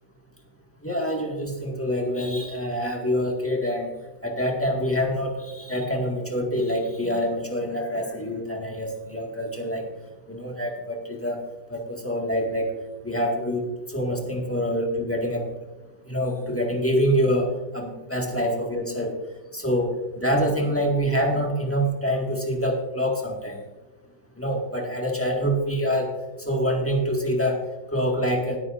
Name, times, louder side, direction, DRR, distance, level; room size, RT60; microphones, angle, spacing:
voice 1, 0.8-3.9 4.2-9.8 10.3-11.4 11.7-12.7 13.0-15.5 16.1-19.2 19.5-23.6 24.4-26.1 26.4-27.6 27.9-28.6, equal, 10° left, 0 dB, 1.7 m, -26 dB
19.5 x 9.1 x 2.6 m, 1.1 s
omnidirectional pair, 1.9 m